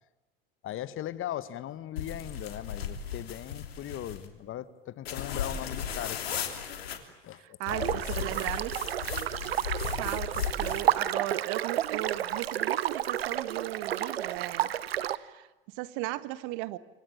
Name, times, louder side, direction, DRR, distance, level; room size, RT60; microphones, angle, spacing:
voice 1, 0.6-6.2 7.2-8.0, left 12 dB, 45° left, 1.8 m, -39 dB
sound 1, 2.0-4.3 5.0-7.0 7.7-10.9, left 8 dB, 80° left, 3.2 m, -36 dB
voice 2, 7.4-8.8 9.8-14.7 15.0-16.8, right 18 dB, 60° right, 1.6 m, -37 dB
sound 2, 7.6-15.2, right 11 dB, 85° right, 1.0 m, -31 dB
27.5 x 24.5 x 8.7 m
hypercardioid pair, 80°, 30 cm